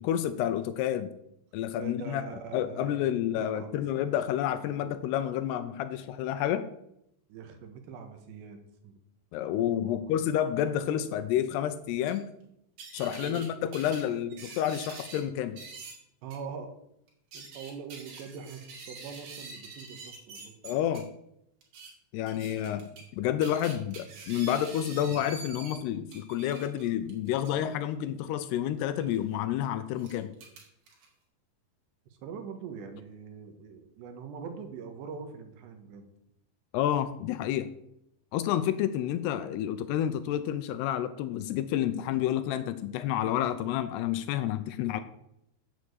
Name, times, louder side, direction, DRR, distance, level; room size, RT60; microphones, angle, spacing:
voice 1, 0.0-1.2 1.5-2.2 2.5-6.7 9.3-12.3 12.9-15.6 20.6-21.1 22.1-30.3 36.7-37.7 38.3-45.0, left 11 dB, 80° left, 11 dB, 2.6 m, -29 dB
voice 2, 1.7-4.2 4.6-5.0 7.3-9.0 9.8-10.1 13.2-14.2 16.2-16.8 17.3-20.5 32.1-36.1, right 6 dB, 80° right, 6 dB, 3.4 m, -43 dB
sound 1, 12.1-12.2 12.8-13.5 13.7-15.2 15.6-15.9 16.3-16.4 17.1-21.0 21.6-21.9 22.3-23.1 23.4-25.8 26.1-27.6 29.0-29.2 30.0-31.1, right 4 dB, 65° right, 4.1 m, -45 dB
8.5 x 7.3 x 8.0 m, 0.79 s
omnidirectional pair, 5.0 m